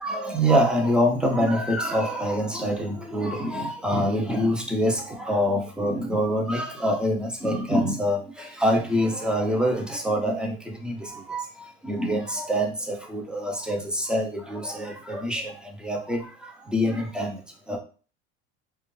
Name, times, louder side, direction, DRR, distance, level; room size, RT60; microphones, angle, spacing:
voice 1, 0.0-17.8, equal, 5° right, 1 dB, 0.5 m, -25 dB
2.4 x 2.2 x 3.0 m, 0.38 s
supercardioid pair, 115°, 32 cm